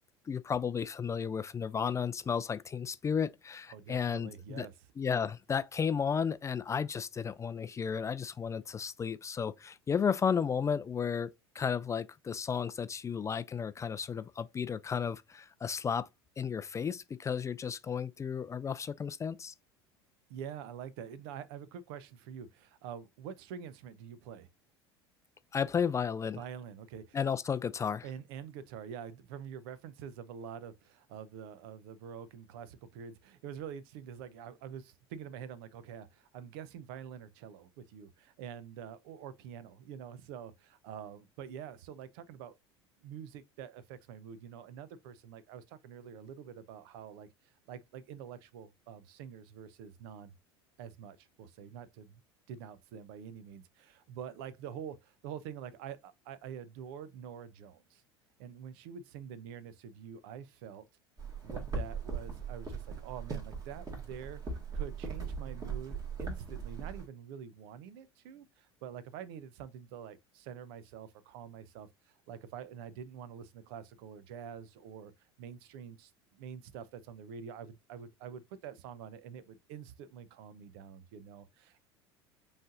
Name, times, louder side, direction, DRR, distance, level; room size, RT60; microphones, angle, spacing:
voice 1, 0.3-4.7 5.0-11.3 11.5-16.1 16.4-19.5 25.5-26.4 27.1-28.1, left 6 dB, 20° left, 0.4 m, -33 dB
voice 2, 3.7-4.7 20.3-24.5 26.4-27.2 28.0-42.5 43.0-50.3 50.8-52.2 52.5-58.0 58.4-60.8 61.4-64.4 64.7-75.1 75.4-81.8, right 8 dB, 60° right, 0.7 m, -46 dB
sound 1, 61.2-67.0, right 5 dB, 25° right, 2.0 m, -39 dB
5.3 x 3.2 x 2.5 m
figure-of-eight pair, 75°, 14 cm